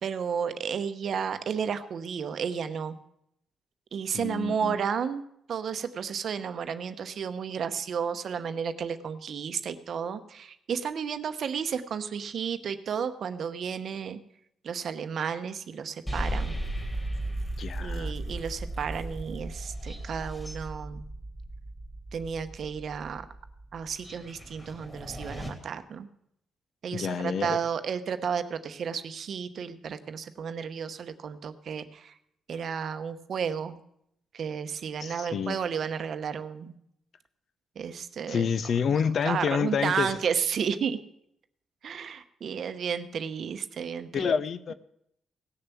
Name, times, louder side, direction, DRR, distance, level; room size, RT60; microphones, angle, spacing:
voice 1, 0.0-3.0 3.9-5.2 5.5-14.2 14.6-16.6 17.8-21.0 22.1-23.2 23.7-26.1 26.8-32.1 32.5-33.8 34.3-36.7 37.8-38.5 39.2-41.0 41.8-44.3, right 7 dB, 50° right, 0.8 m, -32 dB
voice 2, 4.1-4.8 17.6-18.1 26.9-27.6 35.0-35.6 38.3-40.1 44.1-44.7, left 6 dB, 50° left, 0.6 m, -28 dB
sound 1, 16.1-25.5, right 1 dB, 10° left, 2.7 m, -36 dB
17.5 x 7.0 x 7.0 m
cardioid pair, 155°, 0 cm